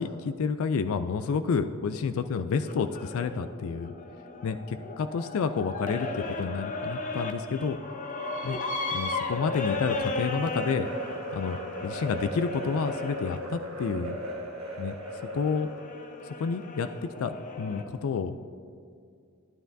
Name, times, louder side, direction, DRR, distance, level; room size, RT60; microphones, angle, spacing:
voice 1, 0.0-3.9 4.4-7.8 8.4-8.6 8.9-10.9 11.3-11.6 11.8-14.2 14.8-15.0 15.3-15.7 16.2-18.4, left 5 dB, 75° left, 10 dB, 0.4 m, -30 dB
sound 1, 2.6-13.4 14.2-17.8, left 3 dB, 35° left, 0.7 m, -36 dB
sound 2, 10.5-15.9, equal, 70° right, 2.1 m, -37 dB
12.5 x 11.5 x 2.6 m, 2.2 s
head